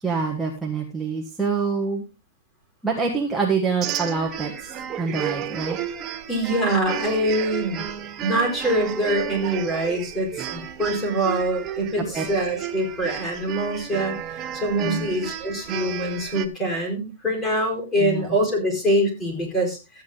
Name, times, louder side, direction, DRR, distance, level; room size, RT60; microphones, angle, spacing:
voice 1, 0.0-2.0 2.8-5.8 12.0-12.3 14.8-15.1 18.0-18.4, right 4 dB, ahead, -3 dB, 1.4 m, -26 dB
sound 1, 3.8-16.5, right 9 dB, 20° right, 0.9 m, -32 dB
voice 2, 6.3-7.9 8.2-20.0, right 1 dB, 15° left, 1 dB, 4.5 m, -24 dB
13.5 x 8.7 x 3.8 m, 0.28 s
supercardioid pair, 170°, 0 cm